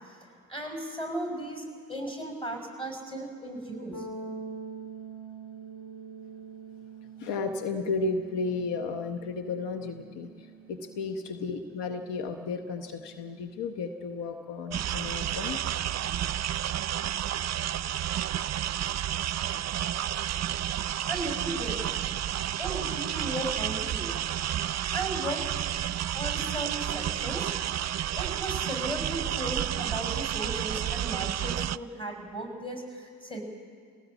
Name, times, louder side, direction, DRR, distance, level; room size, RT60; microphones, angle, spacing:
voice 1, 0.5-3.9 21.1-21.8 22.6-24.1 24.9-25.4 26.1-27.5 28.2-33.4, right 1 dB, 10° left, 2 dB, 7.0 m, -36 dB
sound 1, 3.9-13.6, right 4 dB, 50° left, 4.1 m, -45 dB
voice 2, 7.2-15.6, left 4 dB, 80° left, 7 dB, 1.1 m, -33 dB
sound 2, 14.7-31.8, right 11 dB, 40° right, 0.5 m, -31 dB
20.0 x 18.0 x 8.2 m, 2.2 s
hypercardioid pair, 40°, 41 cm